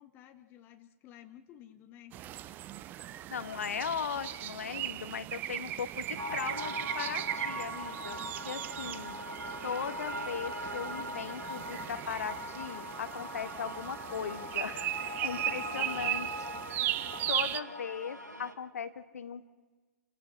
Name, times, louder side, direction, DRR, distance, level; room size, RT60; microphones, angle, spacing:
voice 1, 0.0-2.2 15.3-16.1, left 11 dB, 25° left, 7 dB, 1.1 m, -54 dB
sound 1, 2.1-17.6, right 13 dB, 20° right, 0.6 m, -38 dB
voice 2, 3.3-8.2 8.4-9.2 9.6-16.3 17.3-19.5, left 7 dB, 60° left, 12 dB, 1.3 m, -38 dB
sound 2, 6.2-18.5, equal, 90° right, 1.7 m, -41 dB
29.0 x 15.5 x 5.8 m, 1.3 s
figure-of-eight pair, 115°, 9 cm